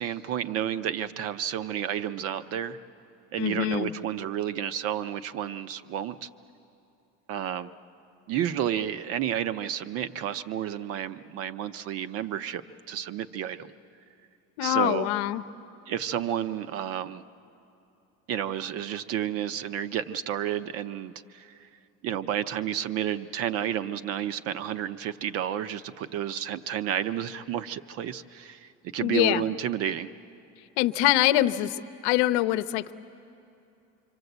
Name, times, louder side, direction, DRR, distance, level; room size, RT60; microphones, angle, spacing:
voice 1, 0.0-2.8 3.3-6.3 7.3-7.7 8.3-12.6 12.9-13.7 14.6-15.1 15.9-17.2 18.3-21.7 22.0-30.1, right 10 dB, 45° right, 13 dB, 0.7 m, -31 dB
voice 2, 3.4-3.9 14.6-15.4 29.0-29.4 30.8-32.9, left 15 dB, 80° left, 12 dB, 0.8 m, -24 dB
26.0 x 25.5 x 8.0 m, 2.8 s
cardioid pair, 170°, 32 cm